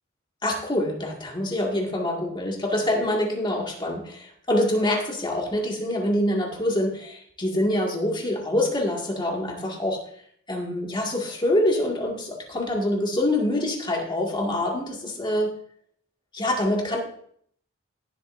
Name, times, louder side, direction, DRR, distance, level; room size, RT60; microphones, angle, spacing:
voice 1, 0.4-10.1 10.5-15.5 16.3-17.0, left 1 dB, 25° left, -1 dB, 2.2 m, -25 dB
18.5 x 7.6 x 2.7 m, 0.63 s
head